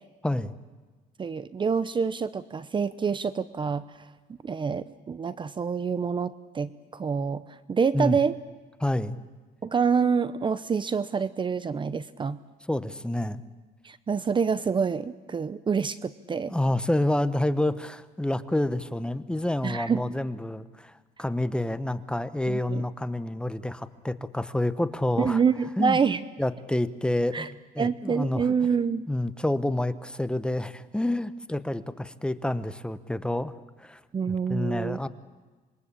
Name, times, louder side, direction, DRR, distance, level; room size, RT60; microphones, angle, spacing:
voice 1, 0.2-0.5 7.9-8.2 8.8-9.2 12.7-13.4 16.5-25.4 25.8-26.0 26.4-28.5 29.1-33.5 33.8-34.0 34.3-35.1, left 1 dB, 5° left, 13 dB, 1.0 m, -28 dB
voice 2, 1.2-3.8 4.4-7.4 7.7-8.3 9.6-12.4 13.8-16.5 19.6-20.1 22.5-22.8 25.2-26.2 27.3-27.5 27.8-29.1 34.1-35.0, right 6 dB, 30° right, 15 dB, 0.8 m, -27 dB
26.5 x 22.5 x 8.5 m, 1.3 s
cardioid pair, 110°, 17 cm